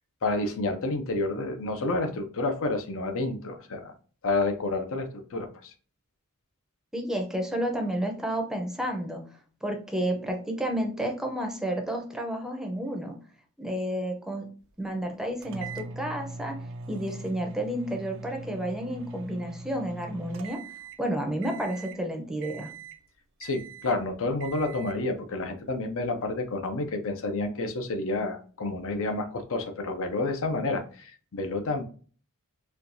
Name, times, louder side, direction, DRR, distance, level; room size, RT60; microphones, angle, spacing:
voice 1, 0.2-3.9 4.2-5.7 23.4-31.8, left 2 dB, 65° left, 7 dB, 0.6 m, -29 dB
voice 2, 6.9-9.2 9.6-13.1 13.6-14.5 14.8-16.6 16.9-20.6 21.0-22.7, right 1 dB, ahead, 2 dB, 0.6 m, -31 dB
sound 1, 15.4-21.1 21.4-22.0 22.4-23.1 23.4-24.0 24.4-25.0, right 3 dB, 60° right, 0.4 m, -41 dB
4.4 x 2.3 x 2.6 m, 0.41 s
head